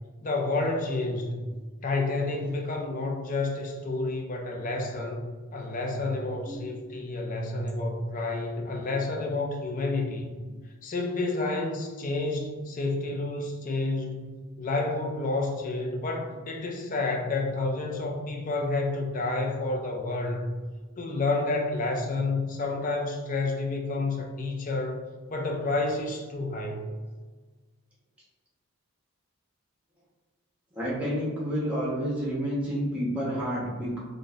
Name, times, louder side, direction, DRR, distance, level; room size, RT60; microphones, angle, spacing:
voice 1, 0.2-1.4 1.8-5.3 5.5-10.3 10.8-20.5 21.0-25.0 25.3-26.9, left 2 dB, 35° left, 2 dB, 0.4 m, -30 dB
voice 2, 30.7-34.0, equal, 5° right, -6 dB, 0.9 m, -29 dB
3.7 x 2.6 x 2.4 m, 1.4 s
head